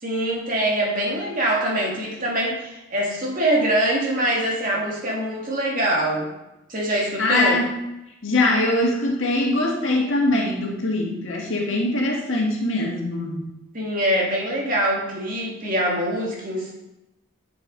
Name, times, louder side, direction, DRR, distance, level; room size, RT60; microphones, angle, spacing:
voice 1, 0.0-6.3 6.7-7.6 13.7-16.7, right 1 dB, 40° right, -3 dB, 2.3 m, -24 dB
voice 2, 7.2-7.8 8.2-13.5, left 2 dB, 60° left, -1 dB, 1.9 m, -22 dB
9.2 x 7.0 x 4.1 m, 0.93 s
head